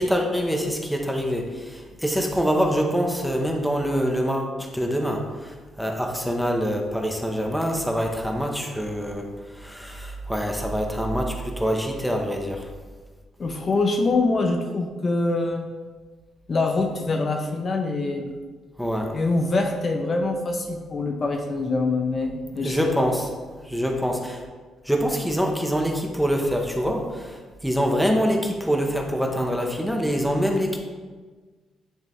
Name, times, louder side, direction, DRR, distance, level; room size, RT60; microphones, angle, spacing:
voice 1, 0.0-9.3 9.6-12.7 18.8-19.1 22.6-23.3 23.7-24.4 24.9-27.4 27.6-30.8, equal, ahead, 2 dB, 0.9 m, -25 dB
voice 2, 13.4-15.7 16.5-18.3 19.1-23.1, left 3 dB, 40° left, 3 dB, 0.6 m, -24 dB
9.0 x 3.4 x 3.2 m, 1.4 s
cardioid pair, 90°, 0 cm